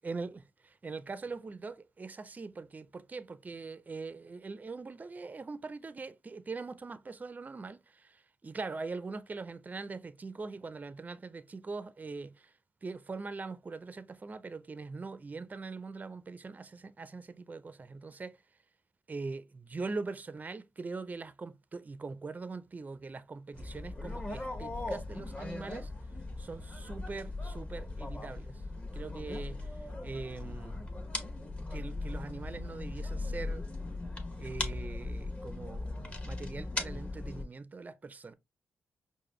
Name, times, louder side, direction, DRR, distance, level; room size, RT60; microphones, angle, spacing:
voice 1, 0.0-0.4 0.8-8.2 8.4-12.5 12.8-18.4 19.1-25.9 26.4-28.6 28.9-29.7 30.0-30.8 31.6-33.6 34.4-38.3, right 4 dB, 35° right, 0.4 m, -42 dB
sound 1, 23.5-37.4, left 2 dB, 25° left, 1.1 m, -39 dB
4.9 x 2.1 x 3.1 m
cardioid pair, 55°, 5 cm